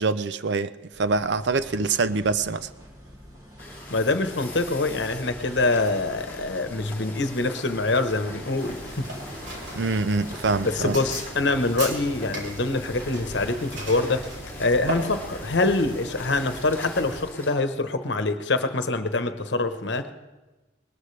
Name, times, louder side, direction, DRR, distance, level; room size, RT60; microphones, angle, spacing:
voice 1, 0.0-2.7 9.7-11.0, right 4 dB, 65° right, 0.6 m, -25 dB
sound 1, 0.9-16.7, equal, 20° right, 2.2 m, -45 dB
sound 2, 3.6-17.5, left 1 dB, 10° left, 2.5 m, -42 dB
voice 2, 3.9-9.1 10.6-20.1, left 2 dB, 70° left, 1.1 m, -25 dB
sound 3, 8.6-17.2, right 2 dB, 85° right, 3.3 m, -38 dB
20.5 x 19.0 x 3.3 m
head